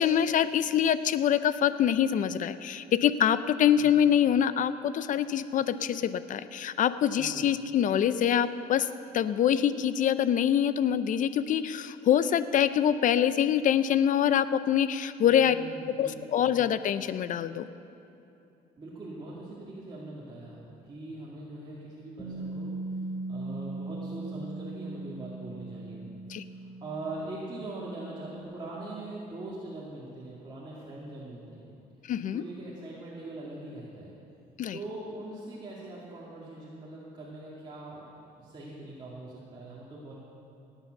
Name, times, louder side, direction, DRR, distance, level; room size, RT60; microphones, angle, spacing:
voice 1, 0.0-8.9 9.1-15.5 16.0-17.7 26.3-26.4 32.1-32.4 34.6-34.8, left 9 dB, 50° left, 13 dB, 0.6 m, -25 dB
voice 2, 7.2-7.5 15.2-16.6 18.8-22.7 23.3-26.1 26.4-31.7 32.3-34.1 34.7-38.1 38.3-40.1, right 2 dB, 25° right, -7 dB, 2.6 m, -42 dB
Bass guitar, 22.2-28.4, right 2 dB, 10° left, 3.4 m, -39 dB
17.5 x 9.2 x 6.6 m, 2.8 s
cardioid pair, 110°, 17 cm